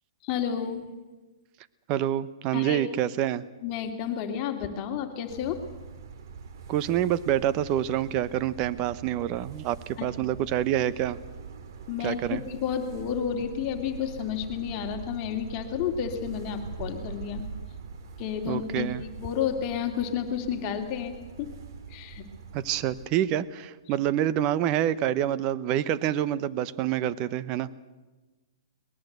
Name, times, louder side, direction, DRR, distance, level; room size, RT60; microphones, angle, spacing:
voice 1, 0.2-0.9 2.5-2.9 3.6-5.6 10.0-10.2 11.9-17.5 18.2-18.9 19.2-21.5 21.9-22.2, left 8 dB, 35° left, 4 dB, 2.9 m, -31 dB
voice 2, 1.9-3.4 6.7-11.2 12.0-12.4 18.5-19.0 22.5-27.7, right 11 dB, 30° right, 15 dB, 1.0 m, -27 dB
sound 1, 5.3-23.1, right 6 dB, 60° right, 2.3 m, -43 dB
22.5 x 20.5 x 8.2 m, 1.2 s
hypercardioid pair, 145°, 2 cm